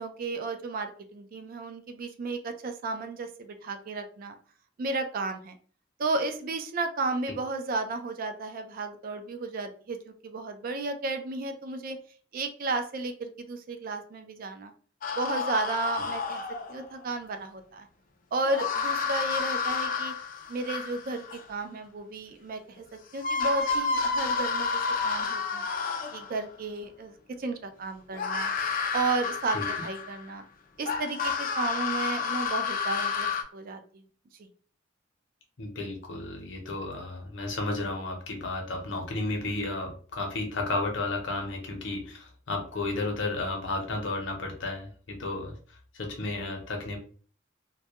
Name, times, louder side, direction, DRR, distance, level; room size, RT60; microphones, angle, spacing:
voice 1, 0.0-4.3 4.8-5.6 6.0-12.0 12.3-14.7 15.2-16.4 16.7-17.9 18.3-20.1 20.5-25.7 26.1-28.5 28.9-29.6 29.8-30.4 30.8-34.0 34.4-34.5, right 3 dB, 45° right, 7 dB, 0.3 m, -33 dB
sound 1, 15.0-16.9 18.5-21.4 22.8-22.9 23.2-26.4 28.1-30.3 30.9-33.4, left 5 dB, 45° left, 0.3 m, -30 dB
voice 2, 35.6-45.5 45.9-47.0, left 2 dB, 65° left, 2 dB, 0.7 m, -33 dB
2.2 x 2.1 x 2.8 m, 0.43 s
head